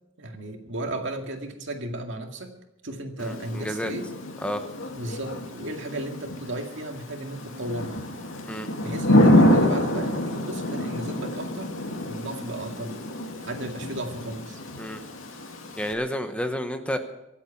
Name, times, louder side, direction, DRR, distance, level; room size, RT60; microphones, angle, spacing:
voice 1, 0.2-2.5 2.8-4.1 4.9-8.0 8.8-11.7 12.1-13.0 13.4-14.6, right 1 dB, 65° right, 3 dB, 2.2 m, -34 dB
Thunder / Rain, 3.2-15.9, left 1 dB, 90° left, 2.5 m, -26 dB
voice 2, 3.2-3.9 4.4-4.6 8.5-8.7 14.8-15.0 15.8-17.0, equal, 5° left, 7 dB, 1.0 m, -30 dB
24.5 x 8.4 x 5.8 m, 0.89 s
head